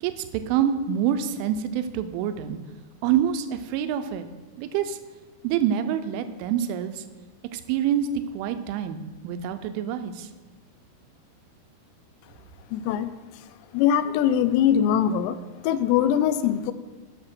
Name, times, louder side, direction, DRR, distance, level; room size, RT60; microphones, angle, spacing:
voice 1, 0.0-2.6 3.0-4.3 4.6-5.0 5.4-7.0 7.5-8.1 8.3-10.3, right 9 dB, 85° right, 9 dB, 3.1 m, -26 dB
voice 2, 12.7-13.1 13.7-15.4 15.6-16.7, left 9 dB, 85° left, 12 dB, 2.4 m, -22 dB
9.9 x 6.5 x 6.0 m, 1.2 s
omnidirectional pair, 5.6 m